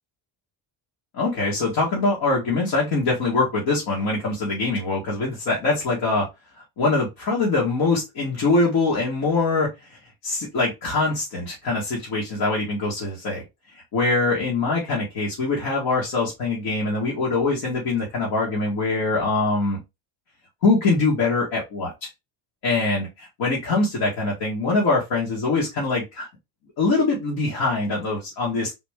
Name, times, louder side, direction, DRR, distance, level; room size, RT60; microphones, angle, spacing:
voice 1, 1.1-6.3 6.8-9.7 10.2-13.4 13.9-19.8 20.6-22.1 22.6-26.3 26.8-28.7, left 3 dB, 80° left, -4 dB, 1.8 m, -23 dB
4.0 x 2.6 x 3.5 m, 0.23 s
cardioid pair, 105°, 48 cm